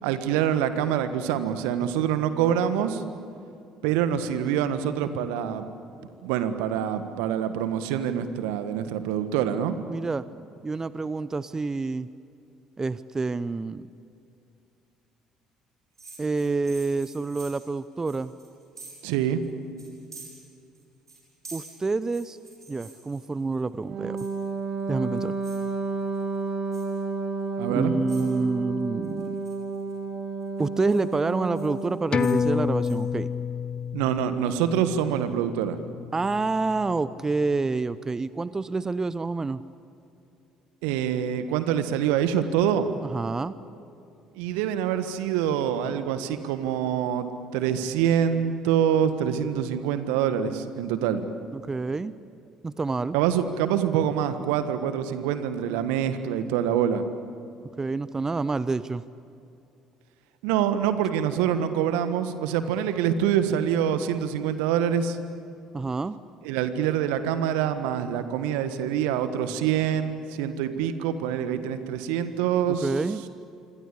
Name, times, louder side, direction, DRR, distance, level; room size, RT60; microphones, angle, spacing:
voice 1, 0.0-3.0 3.8-5.7 6.2-9.8 19.0-19.4 27.6-27.9 33.9-35.8 40.8-42.9 44.4-51.2 53.1-57.0 60.4-65.2 66.4-72.9, right 9 dB, 70° right, 10 dB, 1.5 m, -25 dB
voice 2, 9.9-10.2 10.6-12.1 12.8-13.9 16.2-18.3 21.5-22.4 22.7-24.2 24.9-25.4 27.7-29.4 30.6-33.3 36.1-39.6 43.1-43.5 51.5-52.1 52.6-53.2 57.8-59.0 65.7-66.2 72.8-73.2, right 3 dB, 25° right, 16 dB, 0.7 m, -28 dB
sound 1, 16.0-19.1 19.4-19.5 19.8-20.8 21.1-23.6 24.2-24.6 25.0-25.6 26.0-26.4 26.7-27.0 27.6-27.7 28.1-28.4 29.0-29.9 30.4-32.4 32.8-32.9, right 3 dB, 90° right, 7.4 m, -47 dB
Wind instrument woodwind instrument, 23.9-32.0, right 4 dB, 45° right, 2.6 m, -31 dB
sound 2, 32.1-37.1 37.4-37.5, left 6 dB, 40° left, 1.0 m, -30 dB
26.5 x 25.5 x 8.5 m, 2.6 s
figure-of-eight pair, 50°, 2 cm